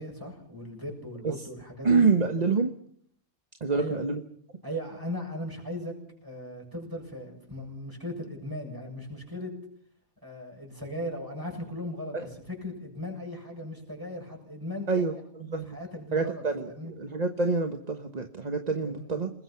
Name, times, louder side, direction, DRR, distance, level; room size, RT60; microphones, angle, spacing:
voice 1, 0.0-2.1 3.7-4.0 4.6-5.9 6.2-9.5 10.2-15.1 15.6-16.9 18.8-19.1, left 1 dB, 10° right, 1 dB, 7.4 m, -38 dB
voice 2, 1.8-2.7 3.6-4.2 12.1-12.3 14.9-15.8 16.1-16.7 17.0-19.3, right 4 dB, 30° right, 7 dB, 1.1 m, -26 dB
28.5 x 21.0 x 5.8 m, 0.64 s
omnidirectional pair, 1.7 m